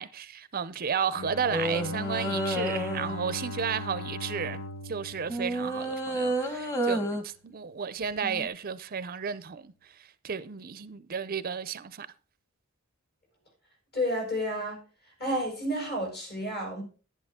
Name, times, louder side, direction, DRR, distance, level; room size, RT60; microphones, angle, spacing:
voice 1, 0.0-12.1, right 6 dB, 45° right, 0.5 m, -33 dB
Bowed string instrument, 1.1-6.3, left 2 dB, 75° left, 0.8 m, -39 dB
sound 1, 1.5-3.4 5.3-7.2 8.2-8.5, right 1 dB, 15° left, 1.4 m, -30 dB
voice 2, 13.9-14.8 15.2-16.8, equal, 50° left, 6.1 m, -30 dB
11.5 x 10.5 x 3.6 m
head